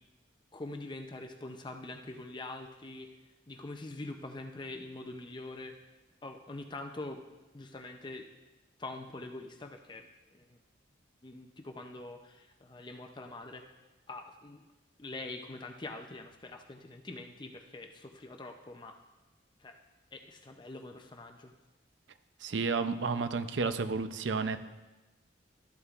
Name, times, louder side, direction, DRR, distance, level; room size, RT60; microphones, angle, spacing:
voice 1, 0.5-3.1 3.5-5.8 6.2-7.2 7.5-8.2 8.8-10.6 11.2-13.7 14.1-14.6 15.0-19.0 19.6-19.7 20.1-21.5, left 2 dB, 25° left, 4 dB, 0.5 m, -44 dB
voice 2, 22.4-24.6, right 4 dB, 75° right, 11 dB, 0.5 m, -31 dB
13.0 x 8.2 x 2.5 m, 1.1 s
head